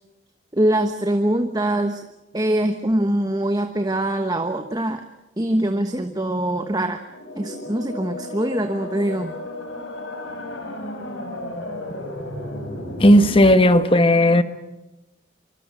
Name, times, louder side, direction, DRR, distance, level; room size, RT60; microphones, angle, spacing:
voice 1, 0.5-2.0 2.3-5.0 5.4-7.0 7.4-9.4, right 1 dB, 20° right, 7 dB, 1.2 m, -23 dB
sound 1, 7.1-13.5, left 1 dB, 85° left, 5.4 m, -33 dB
voice 2, 13.0-14.4, left 1 dB, 30° left, 10 dB, 1.4 m, -14 dB
26.0 x 24.5 x 6.3 m, 0.99 s
head